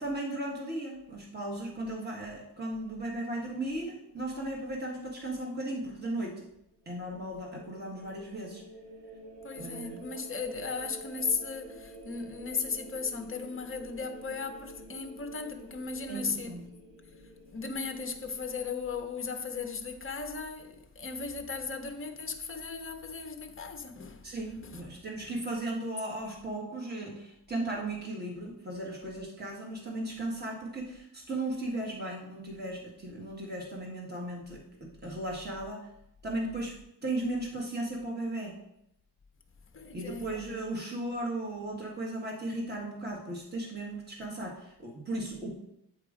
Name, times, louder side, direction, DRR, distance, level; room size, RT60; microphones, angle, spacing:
voice 1, 0.0-6.5 6.8-8.6 9.6-10.1 16.1-16.7 24.2-35.9 36.2-36.8 37.0-38.6 39.9-45.5, right 1 dB, 20° right, 1.4 m, -36 dB
sound 1, 6.7-18.7, right 1 dB, 75° right, 1.8 m, -50 dB
voice 2, 9.4-16.6 17.5-24.3 24.7-24.8 39.7-40.3, left 4 dB, 30° left, 0.6 m, -36 dB
8.3 x 3.0 x 4.8 m
wide cardioid pair, 160°, 48 cm